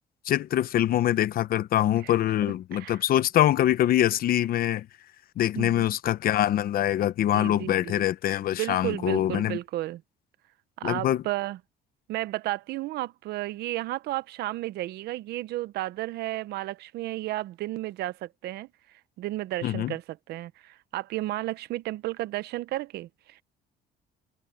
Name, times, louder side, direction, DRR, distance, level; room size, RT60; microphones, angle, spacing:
voice 1, 0.3-4.9 5.4-9.6 10.8-11.2 19.6-19.9, left 12 dB, 60° left, 1.0 m, -24 dB
voice 2, 5.6-5.9 7.3-8.1 8.6-10.0 10.8-11.6 12.1-18.7 19.2-23.4, right 16 dB, 75° right, 0.9 m, -33 dB
cardioid pair, 110°, 17 cm